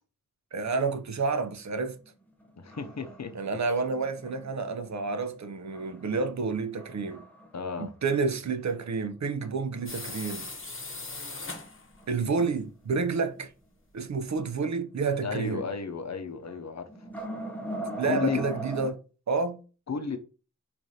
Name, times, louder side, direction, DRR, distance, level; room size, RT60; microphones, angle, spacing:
voice 1, 0.5-2.0 3.3-7.2 7.8-10.5 12.1-13.5 13.9-15.7 18.0-19.0 19.3-19.6, right 4 dB, 60° right, 0.6 m, -29 dB
sound 1, 2.1-5.2 5.6-6.3 6.8-7.8 8.2-8.3 8.8-8.9 11.1-11.2 11.7-13.0 13.3-13.4 15.1-15.6 15.9-16.1 16.4-18.9, right 1 dB, 5° left, 0.7 m, -40 dB
voice 2, 2.6-3.3 7.5-7.9 15.2-16.8 18.0-18.4 19.9-20.2, left 5 dB, 60° left, 0.6 m, -33 dB
sound 2, 9.9-12.0, left 3 dB, 40° left, 0.9 m, -39 dB
4.8 x 2.5 x 2.7 m
wide cardioid pair, 50°, 31 cm